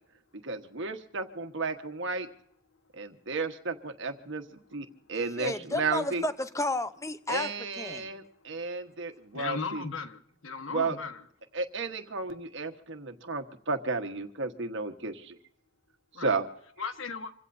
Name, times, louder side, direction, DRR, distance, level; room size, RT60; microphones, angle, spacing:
voice 1, 0.4-2.3 3.0-4.4 4.7-6.2 7.3-9.8 10.7-11.0 11.5-15.4 16.2-16.5, right 4 dB, 65° right, 1.5 m, -33 dB
voice 2, 5.4-7.5 7.8-8.1, left 2 dB, 15° left, 0.8 m, -32 dB
voice 3, 9.3-11.2 16.1-16.3 16.8-17.3, left 4 dB, 80° left, 1.5 m, -36 dB
26.5 x 16.5 x 2.7 m
head